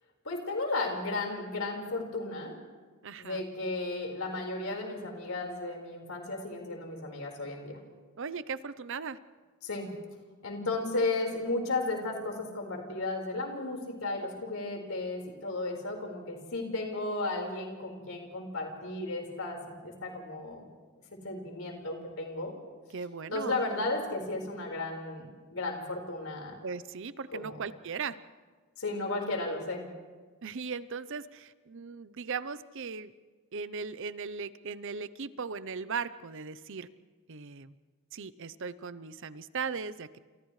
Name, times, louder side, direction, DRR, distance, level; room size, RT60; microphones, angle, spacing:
voice 1, 0.2-2.6 3.2-7.7 9.6-9.9 10.4-20.6 21.2-22.5 23.3-26.5 27.3-27.6 28.8-29.9, left 2 dB, 75° left, 1 dB, 4.7 m, -34 dB
voice 2, 3.0-3.4 8.2-9.2 22.9-23.6 26.6-28.2 30.4-33.1 33.5-36.9 37.3-37.7 38.1-40.2, right 5 dB, 60° right, 15 dB, 0.7 m, -38 dB
30.0 x 28.0 x 3.3 m, 1.4 s
head